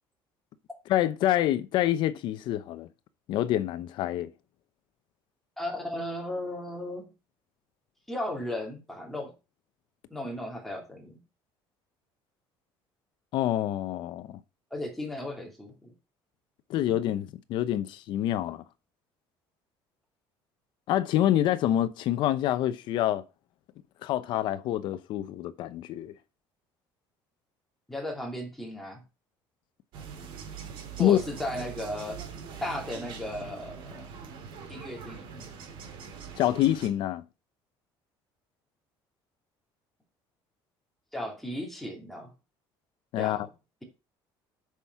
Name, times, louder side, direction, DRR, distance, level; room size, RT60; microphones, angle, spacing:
voice 1, 0.9-2.9 3.3-4.3 13.3-14.4 16.7-18.6 20.9-23.2 24.0-26.1 31.0-31.2 36.4-37.2 43.1-43.5, left 12 dB, 55° left, 0.8 m, -26 dB
voice 2, 5.6-7.1 8.1-9.3 10.1-11.2 14.7-15.9 27.9-29.0 31.0-32.2 32.6-34.1 34.7-35.5 41.1-42.3 43.2-43.5, left 1 dB, ahead, 2.5 m, -35 dB
sound 1, 29.9-36.9, right 6 dB, 65° right, 2.9 m, -42 dB
8.3 x 6.0 x 5.8 m
cardioid pair, 160°, 9 cm